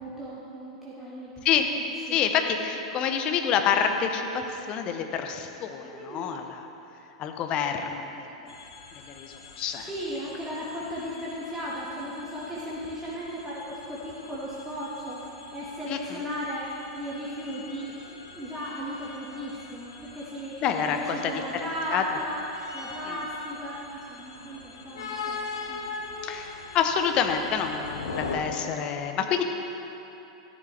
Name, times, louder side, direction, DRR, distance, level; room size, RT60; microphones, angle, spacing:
voice 1, 0.0-2.2 5.9-6.4 9.8-25.8, equal, 5° right, -8 dB, 1.7 m, -36 dB
voice 2, 2.1-6.7 7.2-8.6 9.0-9.9 15.9-16.2 20.6-22.0 23.1-23.2 26.2-29.4, left 7 dB, 35° left, 5 dB, 0.9 m, -28 dB
sound 1, 8.5-28.4, left 4 dB, 65° left, 1.1 m, -42 dB
13.0 x 11.0 x 3.4 m, 3.0 s
figure-of-eight pair, 90°, 3 cm